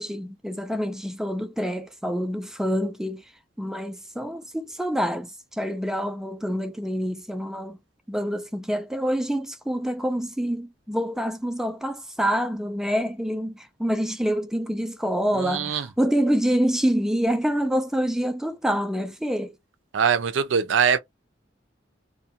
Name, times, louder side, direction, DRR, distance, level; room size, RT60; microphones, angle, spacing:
voice 1, 0.0-3.2 3.6-5.3 5.6-7.8 8.1-19.5, equal, 5° right, 0.3 m, -26 dB
voice 2, 15.3-15.9 19.9-21.0, right 7 dB, 80° right, 0.4 m, -22 dB
2.4 x 2.1 x 2.7 m
head